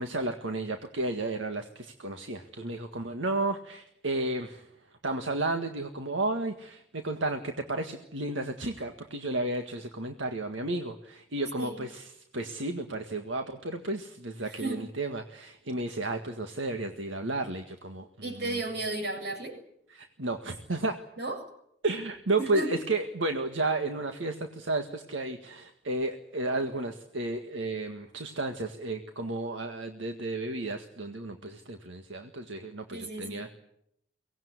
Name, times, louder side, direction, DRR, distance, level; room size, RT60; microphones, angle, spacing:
voice 1, 0.0-4.7 5.0-18.6 19.9-21.0 21.8-33.5, right 2 dB, 80° right, 5 dB, 1.8 m, -32 dB
voice 2, 18.2-19.6 21.2-21.5 22.4-22.7 32.9-33.5, right 2 dB, 55° right, 2 dB, 7.5 m, -34 dB
23.5 x 18.5 x 9.7 m, 0.74 s
head